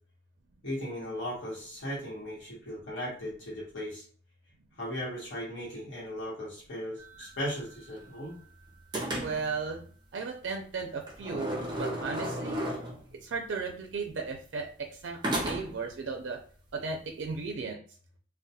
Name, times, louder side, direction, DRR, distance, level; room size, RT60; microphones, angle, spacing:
voice 1, 0.6-4.0 4.8-8.4, equal, 80° left, -6 dB, 1.0 m, -37 dB
sound 1, 7.0-8.5 8.9-9.6 11.1-13.2 15.2-15.9, right 1 dB, 25° right, 0.5 m, -35 dB
voice 2, 9.2-9.9 10.1-12.6 13.2-16.4 16.7-17.8, right 4 dB, 85° right, 2 dB, 0.4 m, -35 dB
2.2 x 2.1 x 2.7 m, 0.43 s
head